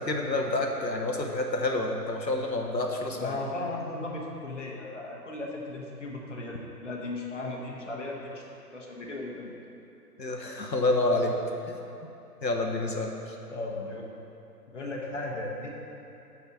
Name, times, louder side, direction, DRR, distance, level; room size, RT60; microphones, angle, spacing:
voice 1, 0.0-3.4 10.2-11.4 11.7-11.8 12.4-13.4, left 2 dB, 90° left, 2 dB, 1.1 m, -28 dB
voice 2, 3.1-8.4 8.7-9.5 13.5-14.1 14.7-15.7, left 2 dB, 45° left, -1 dB, 1.0 m, -36 dB
5.8 x 5.3 x 6.2 m, 3.0 s
figure-of-eight pair, 140°, 49 cm